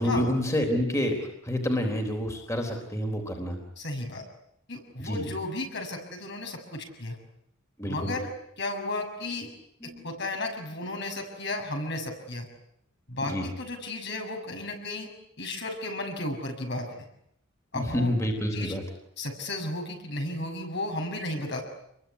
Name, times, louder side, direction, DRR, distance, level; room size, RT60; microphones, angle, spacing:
voice 1, 0.0-3.6 5.0-5.3 7.8-8.2 9.8-10.0 13.2-13.5 17.7-18.8, equal, 15° left, 4 dB, 3.8 m, -28 dB
voice 2, 3.8-4.2 4.7-7.2 7.9-8.3 8.6-9.5 9.8-12.5 13.1-15.1 15.4-16.9 17.7-18.1 18.5-18.7 19.2-21.6, left 2 dB, 60° left, 3 dB, 6.8 m, -34 dB
27.5 x 22.5 x 9.7 m, 0.76 s
head